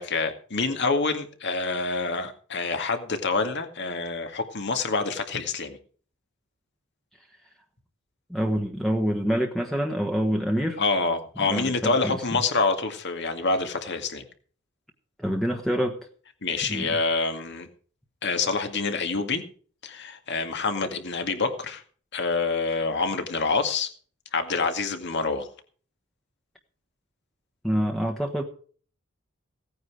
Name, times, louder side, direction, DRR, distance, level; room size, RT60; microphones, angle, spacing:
voice 1, 0.0-5.8 10.8-14.3 16.4-17.7 18.2-19.4 19.8-21.8 22.1-23.9 24.3-25.5, left 4 dB, 55° left, 6 dB, 2.1 m, -27 dB
voice 2, 8.3-10.8 11.4-12.4 15.2-16.0 16.7-17.0 27.6-28.4, equal, ahead, 2 dB, 1.3 m, -26 dB
17.0 x 9.4 x 4.9 m, 0.43 s
head